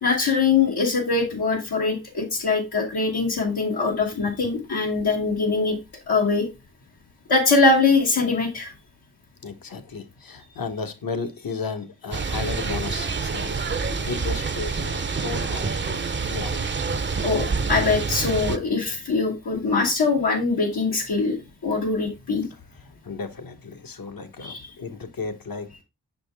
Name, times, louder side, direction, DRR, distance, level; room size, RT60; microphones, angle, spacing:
voice 1, 0.0-5.8 6.1-6.5 7.3-8.7 17.2-22.5 24.4-24.7, left 4 dB, 80° left, 1.3 m, -22 dB
voice 2, 9.4-16.0 16.3-16.6 23.0-25.8, left 4 dB, 65° left, 1.0 m, -34 dB
sound 1, 12.1-18.6, right 4 dB, 30° right, 0.5 m, -27 dB
5.8 x 5.1 x 3.3 m
wide cardioid pair, 65°, 38 cm